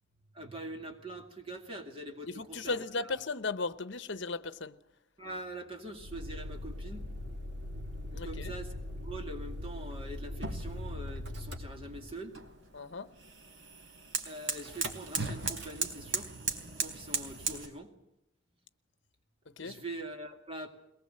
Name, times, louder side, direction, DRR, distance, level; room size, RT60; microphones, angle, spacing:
voice 1, 0.3-3.2 5.2-7.1 8.1-8.8 9.0-12.3 14.2-16.3 16.8-17.9 19.6-20.7, right 1 dB, 25° right, 2.2 m, -43 dB
voice 2, 2.3-4.8 8.1-8.5 12.7-13.1 19.6-19.8, left 3 dB, 60° left, 1.0 m, -36 dB
Motor vehicle (road), 6.0-12.4 14.6-15.1 15.4-15.8, left 1 dB, 60° right, 2.7 m, -40 dB
sound 1, 10.9-17.7, right 4 dB, 75° right, 3.3 m, -38 dB
22.0 x 20.0 x 7.8 m
head